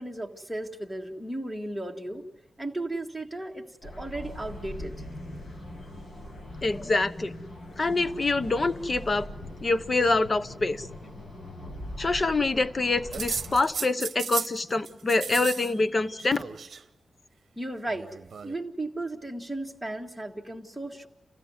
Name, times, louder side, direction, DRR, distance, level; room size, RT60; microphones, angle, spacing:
voice 1, 0.0-2.2 2.6-5.1 17.6-18.1 18.4-21.1, right 1 dB, ahead, 0 dB, 1.9 m, -35 dB
sound 1, 3.8-13.6, left 1 dB, 90° left, 6.9 m, -41 dB
voice 2, 6.6-7.3 7.8-9.3 9.6-10.9 12.0-16.4, left 3 dB, 30° left, 12 dB, 0.9 m, -25 dB
sound 2, 13.1-14.6 14.9-15.7 16.0-16.8 17.9-18.6, right 6 dB, 60° right, 0.9 m, -35 dB
29.0 x 16.5 x 9.5 m, 1.1 s
wide cardioid pair, 175°, 0 cm